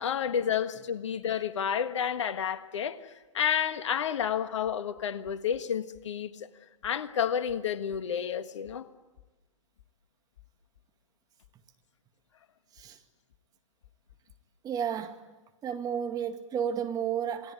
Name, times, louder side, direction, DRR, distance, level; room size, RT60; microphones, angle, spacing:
voice 1, 0.0-6.5 6.8-8.9, left 8 dB, 65° left, 1.6 m, -30 dB
voice 2, 14.6-15.2 15.6-17.5, right 8 dB, 25° right, 2.1 m, -32 dB
28.5 x 19.0 x 9.4 m
figure-of-eight pair, 110°, 16 cm